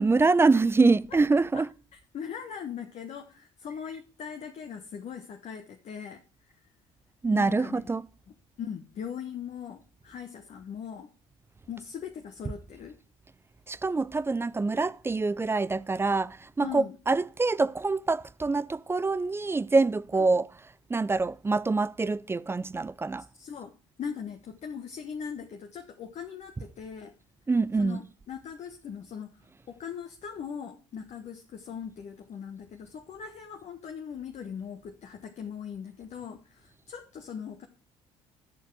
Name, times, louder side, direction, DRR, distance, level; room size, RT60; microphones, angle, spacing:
voice 1, 0.0-1.7 7.2-8.1 13.7-20.5 20.9-23.2 27.5-28.0, right 3 dB, 15° right, 0.5 m, -25 dB
voice 2, 0.5-0.9 1.5-1.6 1.9-6.2 6.5-6.6 7.3-7.9 8.6-11.1 11.7-12.9 16.6-17.0 20.1-20.4 23.3-23.7 24.0-27.1 27.8-29.3 29.7-37.7, left 7 dB, 45° left, 1.3 m, -40 dB
11.5 x 6.7 x 4.7 m
figure-of-eight pair, 55°, 16 cm